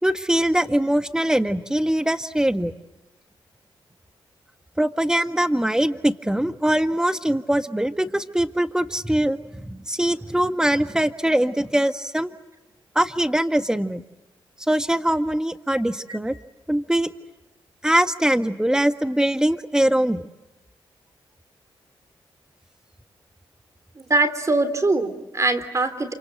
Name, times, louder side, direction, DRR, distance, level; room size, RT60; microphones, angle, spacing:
voice 1, 0.0-2.7 4.8-12.3 12.9-14.0 14.7-16.3 16.7-17.1 17.8-20.2, right 1 dB, 5° right, 9 dB, 1.6 m, -22 dB
voice 2, 24.1-26.1, right 2 dB, 35° right, 11 dB, 3.3 m, -22 dB
28.0 x 26.0 x 7.9 m, 1.0 s
supercardioid pair, 55°, 10 cm